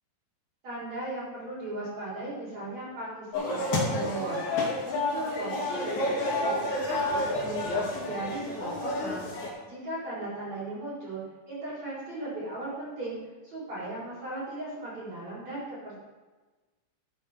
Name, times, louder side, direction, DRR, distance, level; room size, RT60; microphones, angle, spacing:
voice 1, 0.6-4.4 4.8-6.6 6.8-13.2 13.4-16.0, right 2 dB, 40° right, -9 dB, 4.2 m, -37 dB
sound 1, 3.3-9.5, left 2 dB, 55° left, 3.9 m, -30 dB
12.5 x 9.1 x 3.2 m, 1.3 s
omnidirectional pair, 5.5 m